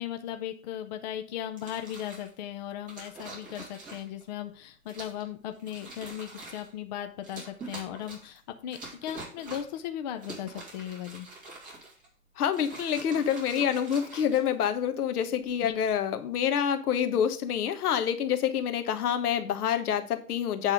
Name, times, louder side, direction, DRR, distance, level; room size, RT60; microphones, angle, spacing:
voice 1, 0.0-11.3 15.6-15.7, left 11 dB, 30° left, 7 dB, 0.5 m, -37 dB
sound 1, 1.5-2.3 2.9-4.2 4.9-5.3 5.6-6.7 7.2-8.4 8.7-9.8 10.2-12.1 12.5-14.9 15.6-16.0, right 2 dB, 20° right, 2.4 m, -45 dB
voice 2, 12.4-20.7, left 8 dB, 75° left, 8 dB, 1.3 m, -27 dB
8.3 x 3.6 x 6.5 m, 0.42 s
hypercardioid pair, 155°, 45 cm